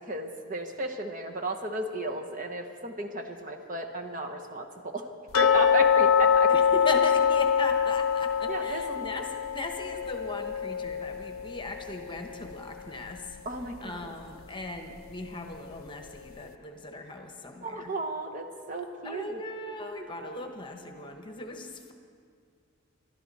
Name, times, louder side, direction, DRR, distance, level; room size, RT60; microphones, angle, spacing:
voice 1, 0.1-5.0 5.4-6.5 8.4-9.0 13.4-14.1 17.6-19.4, right 2 dB, 40° right, 3 dB, 1.1 m, -34 dB
sound 1, 5.3-12.2 12.5-12.6 13.1-13.2 13.7-13.8, left 7 dB, 90° left, 0.6 m, -24 dB
voice 2, 6.5-13.4 13.8-17.9 19.0-21.9, left 2 dB, 25° left, 4 dB, 1.1 m, -38 dB
22.5 x 13.0 x 4.2 m, 2.2 s
head